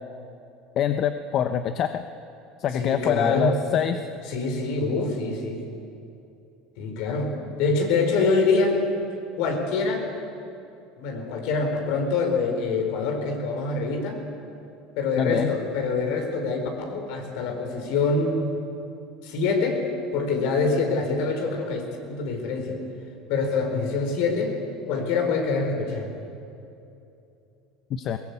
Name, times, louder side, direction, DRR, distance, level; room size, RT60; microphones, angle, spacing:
voice 1, 0.8-2.0 2.6-4.0 15.2-15.5 27.9-28.2, left 9 dB, 50° left, 9 dB, 0.9 m, -25 dB
voice 2, 2.8-3.5 4.3-5.6 6.8-7.3 7.6-8.8 9.3-10.0 11.0-14.2 15.0-18.5 19.2-19.8 20.1-22.8 23.3-24.6 24.9-26.1, left 4 dB, 70° left, 3 dB, 4.6 m, -25 dB
21.0 x 19.0 x 8.3 m, 2.8 s
supercardioid pair, 100°, 0 cm